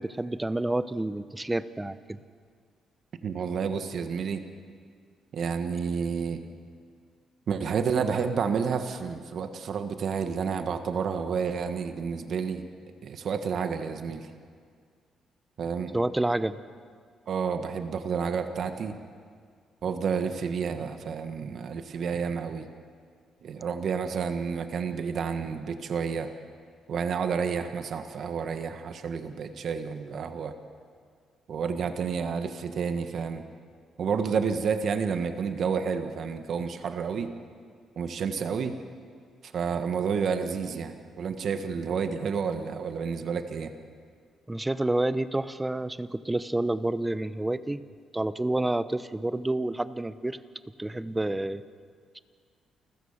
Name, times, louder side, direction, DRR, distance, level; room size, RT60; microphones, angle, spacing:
voice 1, 0.0-2.2 15.9-16.6 44.5-47.8 48.1-50.4 50.8-51.6 52.1-52.2, right 1 dB, 15° right, 14 dB, 0.8 m, -29 dB
voice 2, 3.2-4.4 5.3-6.4 7.5-12.6 13.0-14.3 15.6-15.9 17.3-18.9 19.8-22.7 23.4-26.3 26.9-30.5 31.5-33.4 34.0-37.3 38.0-38.8 39.4-43.7, right 6 dB, 60° right, 8 dB, 1.5 m, -30 dB
29.0 x 14.5 x 7.3 m, 2.1 s
cardioid pair, 90°, 0 cm